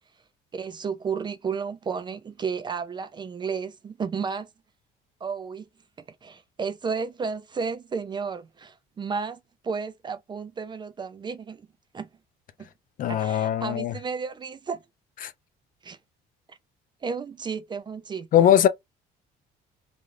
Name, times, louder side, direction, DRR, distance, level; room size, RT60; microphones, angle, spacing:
voice 1, 0.5-4.5 5.2-5.7 6.2-11.7 11.9-12.1 12.6-12.7 13.1-14.8 15.8-16.0 16.5-16.6 17.0-18.5, right 5 dB, 25° right, 0.4 m, -32 dB
voice 2, 13.0-13.9 18.3-18.7, left 10 dB, 55° left, 0.4 m, -20 dB
2.5 x 2.3 x 3.1 m
cardioid pair, 110°, 17 cm